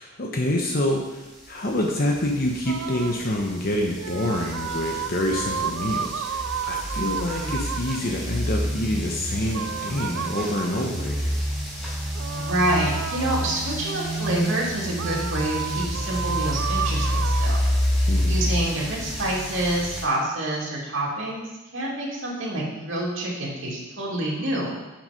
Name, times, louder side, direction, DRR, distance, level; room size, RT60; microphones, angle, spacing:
voice 1, 0.0-11.4 18.1-18.4, left 1 dB, 45° left, 0 dB, 1.0 m, -27 dB
sound 1, 1.4-20.0, equal, ahead, 3.7 m, -29 dB
sound 2, 2.7-3.3 4.0-8.1 9.5-11.0 12.1-13.9 15.0-17.5, right 8 dB, 90° right, 0.4 m, -32 dB
voice 2, 12.3-17.6 18.3-24.7, right 1 dB, 70° right, -5 dB, 2.7 m, -27 dB
10.0 x 6.2 x 5.2 m, 1.1 s
head